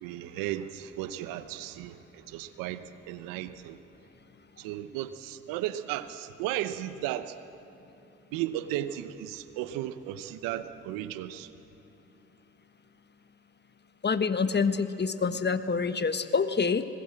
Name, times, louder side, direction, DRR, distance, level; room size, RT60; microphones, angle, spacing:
voice 1, 0.0-3.8 4.6-7.3 8.3-11.5, right 13 dB, 85° right, 12 dB, 1.0 m, -35 dB
voice 2, 14.0-16.8, left 5 dB, 30° left, 11 dB, 1.3 m, -26 dB
25.0 x 20.0 x 7.7 m, 2.9 s
hypercardioid pair, 55°, 33 cm